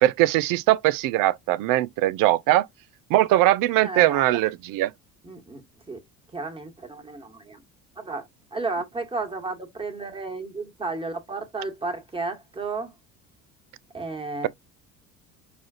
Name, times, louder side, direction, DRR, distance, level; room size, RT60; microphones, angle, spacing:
voice 1, 0.0-2.7 3.1-4.9, right 15 dB, 50° right, 0.5 m, -21 dB
voice 2, 3.8-4.4 5.2-6.0 6.3-7.6 8.0-8.2 8.5-12.9 13.9-14.5, right 3 dB, 10° right, 1.5 m, -33 dB
6.1 x 2.5 x 2.5 m
hypercardioid pair, 60°, 44 cm